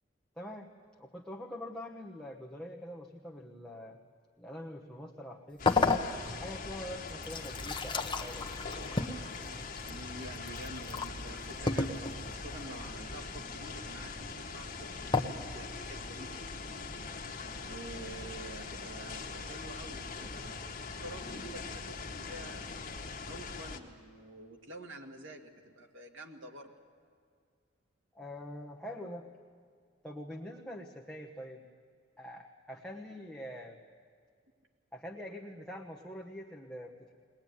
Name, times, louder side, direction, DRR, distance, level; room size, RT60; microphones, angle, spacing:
voice 1, 0.4-0.7 1.0-4.0 4.4-5.8 6.4-8.7 28.1-29.3 30.0-31.7 32.2-33.8 34.9-37.1, left 1 dB, 5° left, -2 dB, 1.2 m, -44 dB
sound 1, 5.6-23.8, left 4 dB, 45° left, 1.6 m, -42 dB
sound 2, 5.7-6.6 7.1-11.1 11.7-12.4 15.1-15.2, left 4 dB, 25° left, 1.0 m, -32 dB
voice 2, 9.9-16.6 17.7-22.6 23.3-26.7, right 1 dB, 70° right, 2 dB, 2.2 m, -48 dB
21.0 x 20.0 x 9.5 m, 2.1 s
head